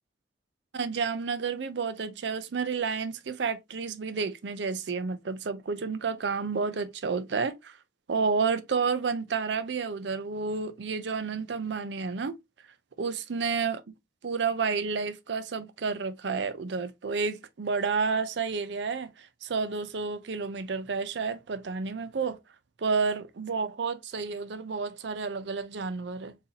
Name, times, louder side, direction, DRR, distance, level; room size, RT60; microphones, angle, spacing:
voice 1, 0.7-7.8 8.1-12.4 13.0-13.8 14.2-22.4 22.8-26.4, right 5 dB, 75° right, 0.5 m, -30 dB
4.0 x 2.7 x 2.7 m
head